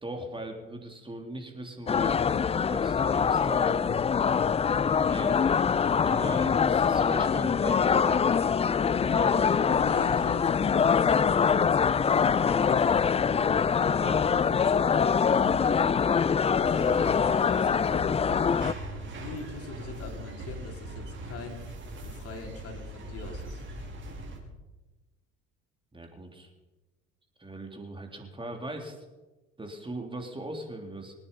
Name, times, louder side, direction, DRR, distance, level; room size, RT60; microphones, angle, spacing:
voice 1, 0.0-2.3 2.6-4.0 5.1-5.4 6.0-8.3 9.0-9.7 13.9-14.3 25.9-26.5 27.4-29.0 29.6-31.1, right 1 dB, 15° right, 4 dB, 3.3 m, -39 dB
sound 1, 1.9-18.7, left 6 dB, 20° left, 0.5 m, -24 dB
voice 2, 9.7-13.6 14.1-14.7 15.2-16.0 16.5-18.2 19.0-21.6 22.0-23.6, left 4 dB, 50° left, 3 dB, 4.0 m, -42 dB
sound 2, 16.6-24.4, right 1 dB, 40° right, 5.2 m, -41 dB
26.5 x 9.8 x 5.4 m, 1.1 s
supercardioid pair, 80°, 30 cm